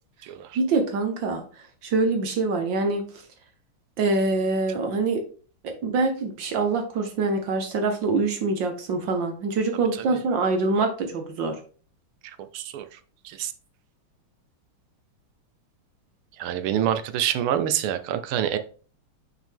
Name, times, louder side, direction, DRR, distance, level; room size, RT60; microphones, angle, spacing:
voice 1, 0.5-3.2 4.0-5.2 5.6-11.6, right 3 dB, 65° right, 5 dB, 1.5 m, -25 dB
voice 2, 12.5-12.9 13.4-13.5 16.4-18.6, right 10 dB, 80° right, 10 dB, 1.5 m, -26 dB
5.9 x 4.6 x 3.4 m, 0.40 s
omnidirectional pair, 2.4 m